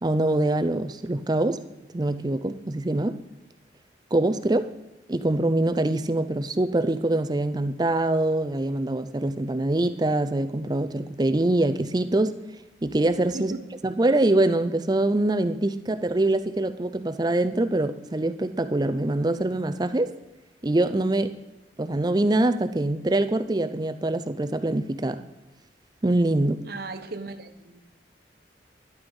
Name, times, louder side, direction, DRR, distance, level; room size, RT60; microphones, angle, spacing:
voice 1, 0.0-1.6 1.9-3.2 4.1-4.7 5.1-12.4 12.8-13.5 13.8-20.1 20.6-21.4 21.8-25.2 26.0-26.6, right 2 dB, 20° right, 0.5 m, -24 dB
voice 2, 26.6-27.8, right 3 dB, 55° right, 1.1 m, -36 dB
12.0 x 11.0 x 5.4 m
head